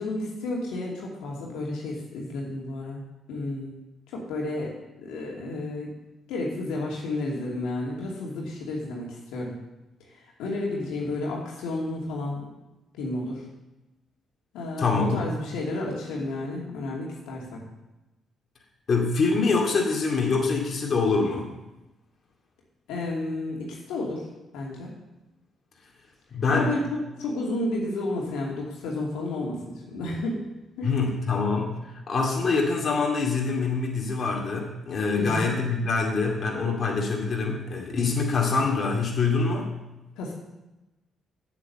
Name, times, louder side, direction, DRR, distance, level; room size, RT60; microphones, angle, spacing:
voice 1, 0.0-3.0 3.3-3.8 4.1-4.7 5.0-5.9 6.3-9.6 10.4-12.4 12.9-13.4 14.5-17.6 22.9-24.3 24.5-24.9 26.5-30.4 30.8-30.9 35.1-35.5 40.2-40.3, left 2 dB, 75° left, -3 dB, 2.5 m, -31 dB
voice 2, 14.8-15.3 18.9-21.5 26.3-26.7 30.8-31.8 32.1-39.7, left 4 dB, 50° left, -1 dB, 2.3 m, -25 dB
8.7 x 8.3 x 6.9 m, 0.99 s
hypercardioid pair, 45°, 0 cm